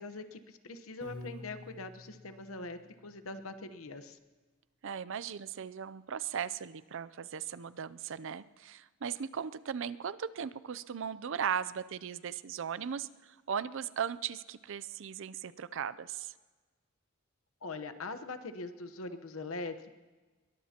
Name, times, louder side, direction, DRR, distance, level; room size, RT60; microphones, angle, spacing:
voice 1, 0.0-4.2 17.6-19.9, left 3 dB, 75° left, 9 dB, 1.0 m, -42 dB
Piano, 1.0-3.2, left 1 dB, 30° left, 7.2 m, -49 dB
voice 2, 4.8-16.3, right 7 dB, 65° right, 17 dB, 0.5 m, -38 dB
22.0 x 21.0 x 2.9 m, 1.3 s
head